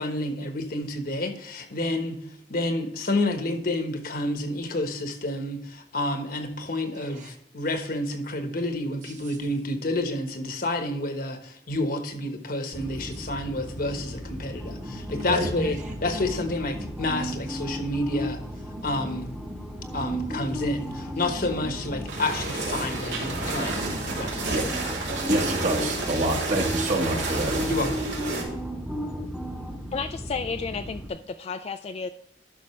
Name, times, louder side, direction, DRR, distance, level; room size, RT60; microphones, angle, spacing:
voice 1, 0.0-2.2 2.5-18.4 18.8-19.3 19.9-23.8 24.1-24.6 27.7-27.9, left 2 dB, 55° left, 7 dB, 1.2 m, -29 dB
sound 1, 12.7-31.1, equal, 5° right, 1.0 m, -34 dB
sound 2, 22.1-28.4, right 3 dB, 85° right, 2.9 m, -31 dB
voice 2, 25.2-27.9, right 1 dB, 45° right, 3 dB, 1.3 m, -27 dB
voice 3, 29.9-32.1, left 5 dB, 35° left, 8 dB, 0.3 m, -32 dB
11.5 x 6.3 x 3.2 m, 0.73 s
head